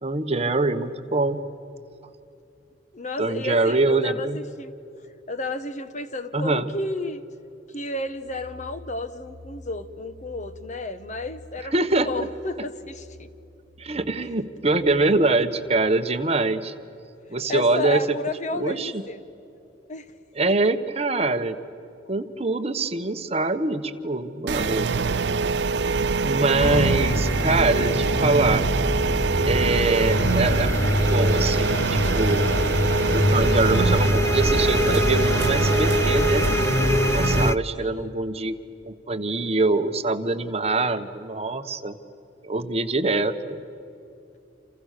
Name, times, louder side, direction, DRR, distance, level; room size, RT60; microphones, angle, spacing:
voice 1, 0.0-1.4 3.2-4.4 6.3-6.7 11.7-12.1 13.8-16.7 17.3-18.2 18.5-19.0 20.3-21.6 22.1-24.9 26.2-28.7 29.4-32.5 33.1-36.4 37.1-38.5 38.8-42.0 42.4-43.6, right 3 dB, 35° right, 9 dB, 1.2 m, -24 dB
voice 2, 2.9-4.7 5.3-7.2 7.7-13.3 14.2-14.3 17.5-19.2 19.9-20.1 37.8-38.1, left 2 dB, 45° left, 11 dB, 1.3 m, -32 dB
sound 1, 8.0-15.7, left 2 dB, 60° left, 2.6 m, -48 dB
sound 2, 24.5-37.5, right 4 dB, 75° right, 0.6 m, -24 dB
sound 3, 26.6-37.6, left 1 dB, 15° left, 0.5 m, -24 dB
29.5 x 28.5 x 6.7 m, 2.8 s
head